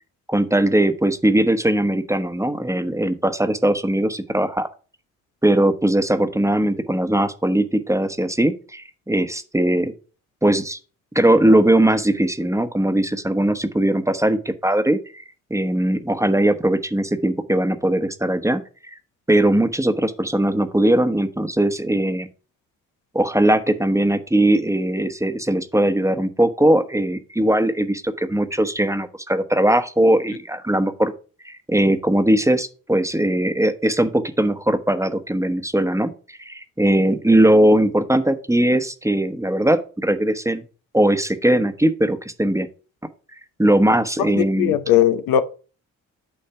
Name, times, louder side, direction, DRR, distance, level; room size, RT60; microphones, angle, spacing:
voice 1, 0.3-4.7 5.4-9.9 10.4-10.8 11.1-15.2 15.5-18.9 19.3-22.3 23.1-31.1 31.4-40.6 40.9-42.7 43.6-44.8, right 1 dB, 10° right, 1.0 m, -19 dB
voice 2, 44.3-45.4, left 11 dB, 90° left, 0.7 m, -18 dB
8.8 x 3.2 x 5.6 m
supercardioid pair, 50°, 35 cm